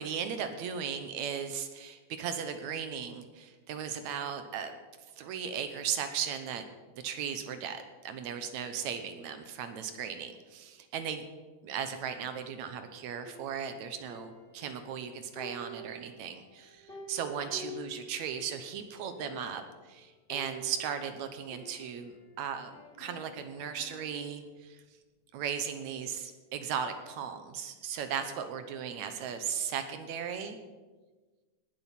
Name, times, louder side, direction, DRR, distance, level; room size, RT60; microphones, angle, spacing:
voice 1, 0.0-4.8 5.2-6.7 7.0-11.2 11.6-22.7 23.0-24.8 25.3-30.6, right 7 dB, 70° right, 8 dB, 2.1 m, -37 dB
sound 1, 13.2-15.0 15.3-18.6 18.9-19.0 19.2-19.8 20.3-22.3 22.7-24.4, right 1 dB, 20° left, 2.2 m, -48 dB
19.0 x 7.7 x 5.8 m, 1.3 s
omnidirectional pair, 3.5 m